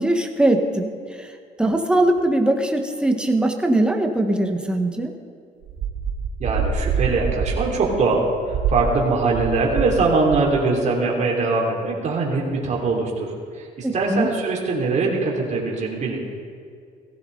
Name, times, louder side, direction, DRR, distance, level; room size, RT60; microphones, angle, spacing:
voice 1, 0.0-1.3 1.6-5.1 13.8-14.3, right 1 dB, 5° right, 3 dB, 1.4 m, -21 dB
sound 1, 5.6-10.0 10.2-10.6, right 6 dB, 70° right, 1.5 m, -26 dB
voice 2, 6.4-13.3 13.6-16.3, right 3 dB, 45° right, -2 dB, 3.2 m, -22 dB
17.0 x 15.0 x 4.0 m, 2.3 s
cardioid pair, 110°, 17 cm